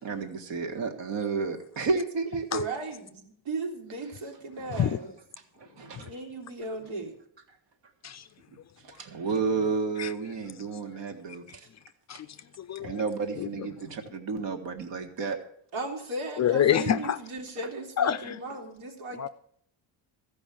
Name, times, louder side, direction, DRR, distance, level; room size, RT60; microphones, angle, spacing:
voice 1, 0.0-2.6 4.7-4.8 5.6-6.1 8.8-11.4 12.8-15.4, right 4 dB, 65° right, 1.8 m, -31 dB
voice 2, 2.5-5.1 5.8-7.2 11.6-11.7 15.7-19.3, right 2 dB, 85° right, 2.9 m, -36 dB
voice 3, 12.1-13.0 13.4-13.7 16.4-17.2 18.0-18.4 19.2-19.3, left 10 dB, 40° left, 0.4 m, -27 dB
14.0 x 5.3 x 8.6 m
cardioid pair, 140°, 47 cm